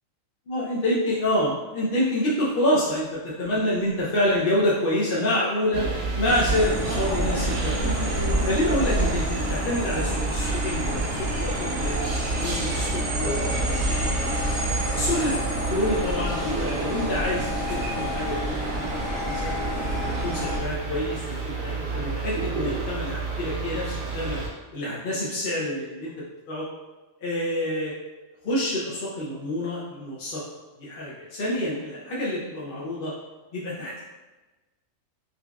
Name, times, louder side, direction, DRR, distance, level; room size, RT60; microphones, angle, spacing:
voice 1, 0.5-5.8 6.2-7.9 8.4-14.4 14.9-15.3 15.7-18.9 19.1-19.5 20.0-24.4 24.7-26.7 27.2-27.9 28.4-30.4 30.8-33.1 33.5-34.0, left 1 dB, 55° left, -7 dB, 0.7 m, -27 dB
sound 1, 5.7-24.5, right 2 dB, 55° right, 0.9 m, -30 dB
sound 2, 6.2-20.6, right 1 dB, 85° right, 1.3 m, -29 dB
5.1 x 2.3 x 2.3 m, 1.2 s
omnidirectional pair, 1.4 m